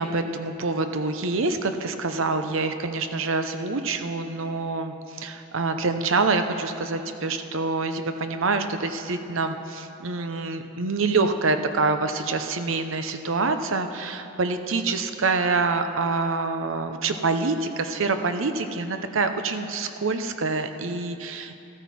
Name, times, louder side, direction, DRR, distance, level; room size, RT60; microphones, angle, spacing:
voice 1, 0.0-21.6, right 3 dB, 70° right, 8 dB, 0.7 m, -26 dB
14.0 x 13.5 x 4.2 m, 2.8 s
head